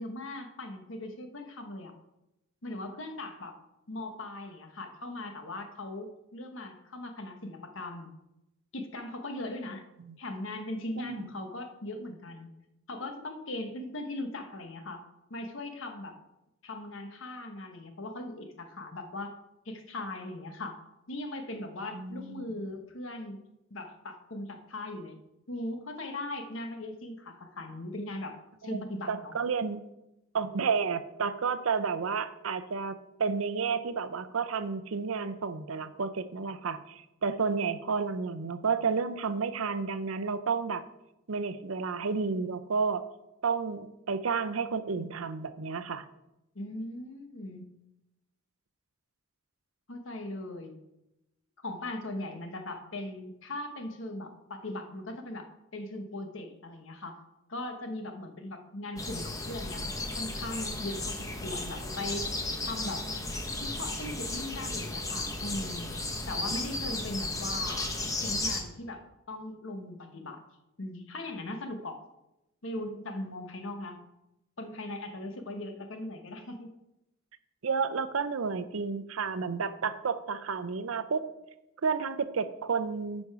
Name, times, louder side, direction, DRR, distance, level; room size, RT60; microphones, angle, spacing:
voice 1, 0.0-1.9 2.6-3.6 3.9-8.1 8.7-9.8 10.2-12.5 12.9-15.0 15.3-16.2 16.6-19.3 19.6-20.8 21.1-23.4 23.7-25.2 25.5-29.3 46.5-47.7 49.9-50.8 51.6-55.5 55.7-57.2 57.5-59.8 60.2-62.3 62.6-63.1 63.6-65.9 66.3-67.9 68.2-69.0 69.3-70.4 70.8-72.0 72.6-74.0 74.6-76.7, left 1 dB, 65° left, 5 dB, 1.2 m, -39 dB
voice 2, 11.0-11.3 21.9-22.4 28.6-28.8 29.1-29.8 30.3-40.8 41.3-43.0 43.4-46.1 77.6-81.3 81.8-83.3, right 5 dB, 80° right, 13 dB, 0.6 m, -31 dB
sound 1, 59.0-68.6, left 2 dB, 15° left, 0.9 m, -34 dB
10.5 x 5.3 x 4.8 m, 0.91 s
head